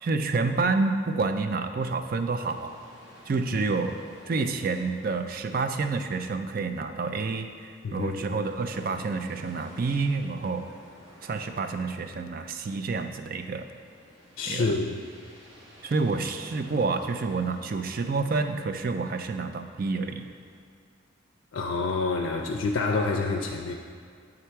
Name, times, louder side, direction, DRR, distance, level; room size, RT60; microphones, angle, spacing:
voice 1, 0.0-2.7 3.3-10.7 11.2-13.7 14.5-14.7 15.8-20.3, right 4 dB, 45° right, 7 dB, 0.4 m, -28 dB
sound 1, 2.1-20.6, equal, 85° right, 1.6 m, -53 dB
voice 2, 7.8-8.3 14.4-15.0 21.5-23.7, left 3 dB, 75° left, 2 dB, 0.4 m, -27 dB
8.4 x 3.8 x 4.5 m, 2.2 s
head